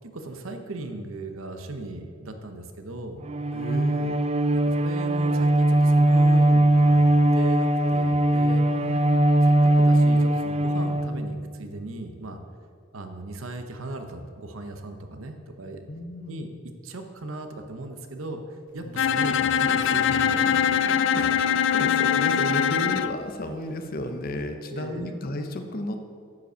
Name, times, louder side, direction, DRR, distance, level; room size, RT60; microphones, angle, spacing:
voice 1, 0.0-3.2 4.5-7.1 7.3-8.7 9.4-12.4 12.9-15.8 16.3-21.3 21.8-21.9 24.7-25.2, right 2 dB, 80° right, 6 dB, 0.9 m, -37 dB
Bowed string instrument, 3.2-11.6, right 1 dB, 30° right, 0.3 m, -20 dB
voice 2, 3.5-4.2 8.7-9.4 15.9-16.4 18.8-19.0 19.9-20.2 20.4-20.7 21.1-21.2 21.7-26.0, left 1 dB, 45° left, 6 dB, 0.7 m, -33 dB
Bowed string instrument 2, 19.0-23.2, left 8 dB, 60° left, 0.3 m, -22 dB
9.4 x 5.2 x 6.7 m, 2.1 s
head